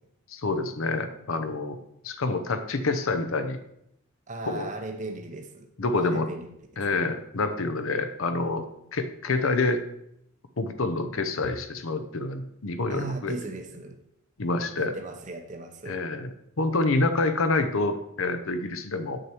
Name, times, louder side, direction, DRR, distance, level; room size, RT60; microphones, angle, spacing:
voice 1, 0.3-1.8 2.0-3.6 4.5-4.7 5.8-6.3 6.8-8.7 8.9-9.8 10.6-13.4 14.4-14.9 15.9-19.2, left 3 dB, 75° left, 9 dB, 0.7 m, -27 dB
voice 2, 4.3-6.5 6.9-7.0 11.4-11.5 12.9-14.0 14.8-16.0, right 2 dB, 35° right, 4 dB, 0.7 m, -37 dB
7.8 x 6.5 x 4.4 m, 0.78 s
head